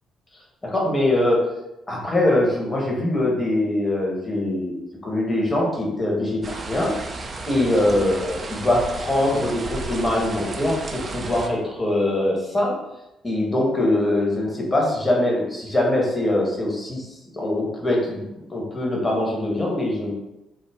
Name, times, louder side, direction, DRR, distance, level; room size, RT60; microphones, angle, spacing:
voice 1, 0.6-1.4 1.9-6.9 7.5-12.8 13.2-17.1 17.3-20.1, left 1 dB, 25° left, -2 dB, 0.9 m, -22 dB
sound 1, 6.4-11.5, right 3 dB, 35° right, 0.3 m, -33 dB
2.4 x 2.1 x 3.4 m, 0.93 s
figure-of-eight pair, 45°, 0 cm